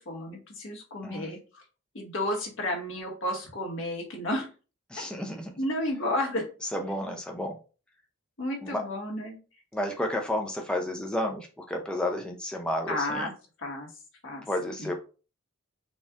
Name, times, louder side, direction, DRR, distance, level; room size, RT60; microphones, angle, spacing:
voice 1, 0.1-1.6 1.9-4.5 5.6-6.5 8.4-9.4 12.9-13.3 13.6-13.9 14.2-14.4 14.8-14.9, left 1 dB, 65° left, 0 dB, 1.3 m, -32 dB
voice 2, 4.9-5.5 6.6-7.6 8.6-8.8 9.7-13.3 14.5-14.9, left 1 dB, 5° left, 1 dB, 0.5 m, -31 dB
4.3 x 2.4 x 3.5 m, 0.34 s
head